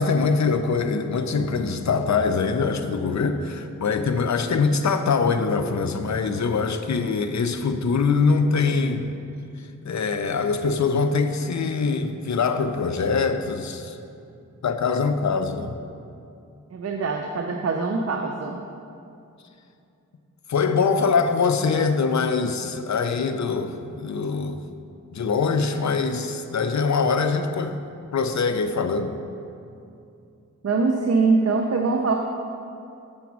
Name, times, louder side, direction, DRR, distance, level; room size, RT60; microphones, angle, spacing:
voice 1, 0.0-9.1 9.8-14.0 14.6-15.8 20.5-24.6 25.1-27.7 28.1-29.1, left 4 dB, 60° left, 8 dB, 0.6 m, -23 dB
voice 2, 16.7-18.6 30.6-32.1, right 4 dB, 50° right, 2 dB, 0.6 m, -23 dB
7.0 x 5.1 x 6.0 m, 2.6 s
wide cardioid pair, 65°, 32 cm